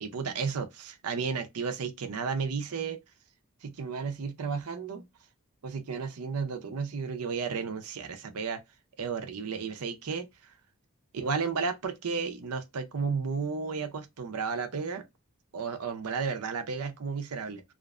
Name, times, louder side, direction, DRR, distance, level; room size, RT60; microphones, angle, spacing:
voice 1, 0.0-3.0 3.6-5.1 5.6-8.6 9.0-10.3 11.1-15.0 15.5-17.6, right 5 dB, 85° right, 0.6 m, -33 dB
2.5 x 2.4 x 2.2 m
head